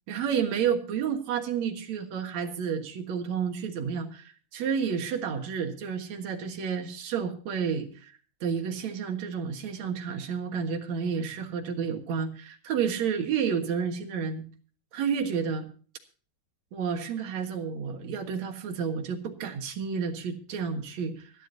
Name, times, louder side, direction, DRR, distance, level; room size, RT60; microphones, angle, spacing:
voice 1, 0.1-8.1 8.4-14.4 14.9-15.7 16.7-21.5, right 7 dB, 65° right, 6 dB, 2.7 m, -30 dB
24.5 x 10.5 x 2.7 m, 0.41 s
omnidirectional pair, 3.6 m